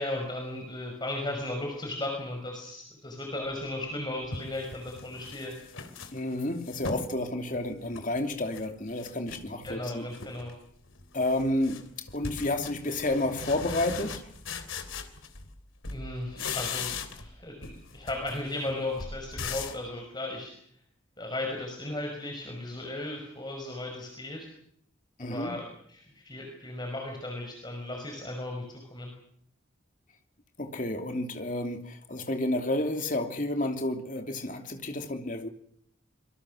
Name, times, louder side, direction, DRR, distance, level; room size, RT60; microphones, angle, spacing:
voice 1, 0.0-5.5 9.5-10.5 15.9-20.5 21.2-24.5 25.3-29.1, left 1 dB, 20° left, 2 dB, 5.5 m, -36 dB
sound 1, 3.7-3.8 4.3-7.1 7.5-8.7 9.0-9.8 10.1-10.6 10.9-15.6 15.8-17.4 17.6-19.9, left 5 dB, 85° left, 3.4 m, -39 dB
voice 2, 6.1-10.0 11.1-14.2 25.2-25.5 30.6-35.5, left 1 dB, 40° left, 5 dB, 2.9 m, -30 dB
26.0 x 23.0 x 6.4 m, 0.66 s
head